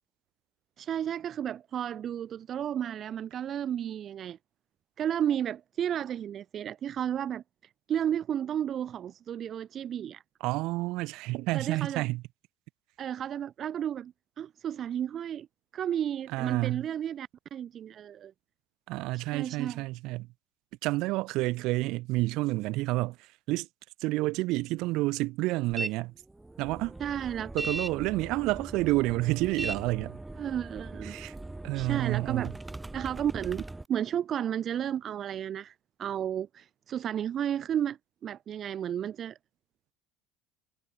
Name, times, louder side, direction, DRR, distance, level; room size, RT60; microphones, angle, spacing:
voice 1, 0.8-4.4 5.0-7.4 7.9-10.2 11.5-12.1 13.0-15.5 15.7-18.3 19.1-19.8 27.0-27.5 30.4-31.2 31.7-32.5 32.9-35.7 36.0-39.4, right 9 dB, 35° right, 0.6 m, -33 dB
voice 2, 10.4-12.2 16.3-16.8 18.9-20.3 20.8-23.2 23.5-23.7 24.0-26.1 26.6-26.9 27.5-30.2 31.0-31.3 31.6-32.5, right 20 dB, 60° right, 1.0 m, -29 dB
sound 1, 25.7-25.9 26.3-33.8, right 2 dB, 5° right, 1.1 m, -39 dB
cardioid pair, 160°, 0 cm